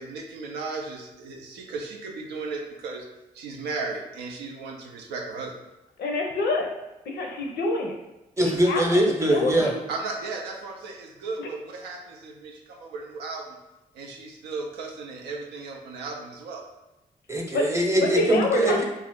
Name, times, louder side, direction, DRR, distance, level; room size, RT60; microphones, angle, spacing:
voice 1, 0.0-3.1 3.3-5.5 9.9-13.6 13.9-16.6, right 3 dB, 90° right, 1 dB, 0.4 m, -35 dB
voice 2, 6.0-6.7 7.1-7.9 8.4-8.8 9.3-9.7 17.5-17.7 18.0-18.8, left 3 dB, 75° left, 1 dB, 0.5 m, -26 dB
voice 3, 8.4-9.7 17.3-18.8, right 1 dB, 15° right, 0 dB, 0.8 m, -22 dB
2.4 x 2.1 x 3.5 m, 0.98 s
supercardioid pair, 45°, 17 cm